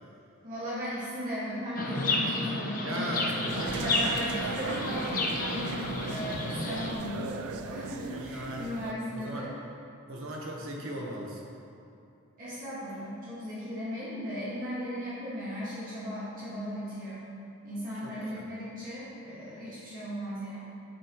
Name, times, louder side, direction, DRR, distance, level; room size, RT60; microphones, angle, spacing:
voice 1, 0.4-3.3 3.7-9.5 12.4-17.3 17.6-20.7, equal, 40° right, -10 dB, 1.8 m, -37 dB
Chirp tweet, 1.7-6.9, left 2 dB, 40° left, 0.7 m, -31 dB
voice 2, 2.8-4.1 5.4-5.5 8.1-8.7 9.1-9.5 10.1-11.5 18.0-18.4, right 1 dB, 65° right, -2 dB, 1.2 m, -37 dB
sound 1, 3.5-8.9, right 5 dB, 85° right, 0.4 m, -38 dB
9.2 x 7.1 x 3.1 m, 2.7 s
head